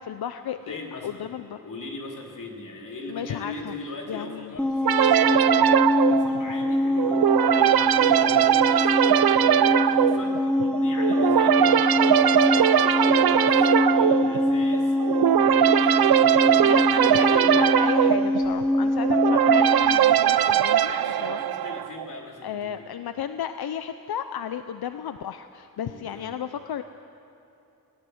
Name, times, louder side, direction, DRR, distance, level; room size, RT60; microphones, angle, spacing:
voice 1, 0.0-1.6 3.1-3.7 4.1-4.5 16.6-20.9 21.2-21.4 22.4-26.8, left 9 dB, 90° left, 10 dB, 0.7 m, -33 dB
voice 2, 0.7-1.3 1.6-18.2 20.7-22.9 25.8-26.4, left 2 dB, 55° left, 0 dB, 3.3 m, -39 dB
sound 1, 4.6-20.0, left 1 dB, 5° left, 0.9 m, -24 dB
sound 2, 4.9-22.0, right 10 dB, 75° right, 0.6 m, -20 dB
20.0 x 18.0 x 7.9 m, 2.7 s
wide cardioid pair, 160°, 36 cm